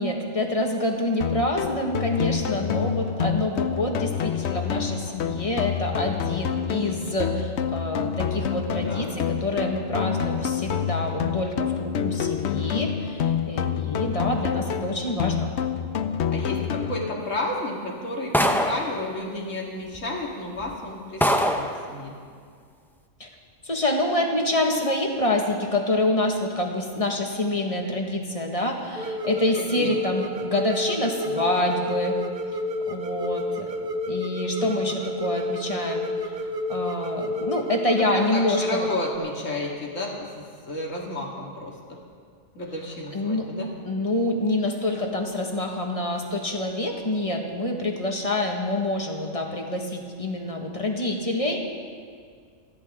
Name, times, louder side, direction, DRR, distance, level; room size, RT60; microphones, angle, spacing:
voice 1, 0.0-15.5 23.2-23.3 23.6-32.2 32.9-33.7 34.1-36.0 36.7-38.9 43.1-43.5 43.8-51.6, left 1 dB, 30° left, 1 dB, 1.6 m, -27 dB
sound 1, 1.2-17.2, left 8 dB, 65° left, 0.9 m, -27 dB
voice 2, 8.7-9.1 16.3-22.1 29.6-29.9 34.4-34.8 38.1-42.0 42.5-43.7, left 2 dB, 85° left, -1 dB, 2.5 m, -32 dB
sound 2, 18.3-18.9 19.9-20.0 20.6-20.7 21.2-21.7, equal, ahead, 0.6 m, -22 dB
sound 3, 29.0-39.2, left 2 dB, 50° right, 1.0 m, -30 dB
28.5 x 11.0 x 3.7 m, 2.1 s
omnidirectional pair, 1.3 m